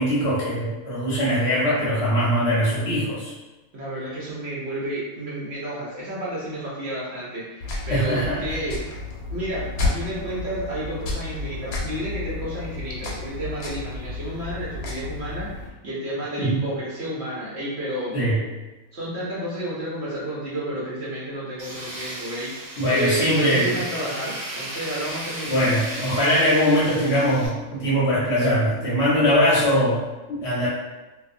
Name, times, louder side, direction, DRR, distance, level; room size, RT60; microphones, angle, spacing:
voice 1, 0.0-3.3 7.9-8.4 16.4-16.6 18.1-18.4 22.8-23.7 25.5-30.7, equal, 55° left, -7 dB, 0.9 m, -21 dB
voice 2, 3.7-9.0 9.3-18.2 18.9-25.8, right 1 dB, 55° right, -7 dB, 0.9 m, -31 dB
sound 1, 7.6-15.7, left 3 dB, 85° left, 1.1 m, -31 dB
Tools, 21.6-27.5, right 1 dB, 85° right, 1.3 m, -35 dB
2.5 x 2.3 x 2.5 m, 1.1 s
omnidirectional pair, 1.5 m